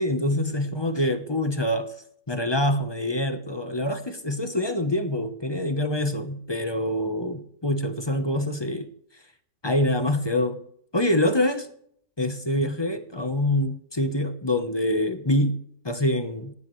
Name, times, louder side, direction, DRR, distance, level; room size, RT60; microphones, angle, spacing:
voice 1, 0.0-1.9 2.3-8.9 9.6-10.6 10.9-11.7 12.2-15.6 15.8-16.5, left 1 dB, 20° left, 9 dB, 0.9 m, -25 dB
19.0 x 16.0 x 3.2 m, 0.67 s
omnidirectional pair, 1.6 m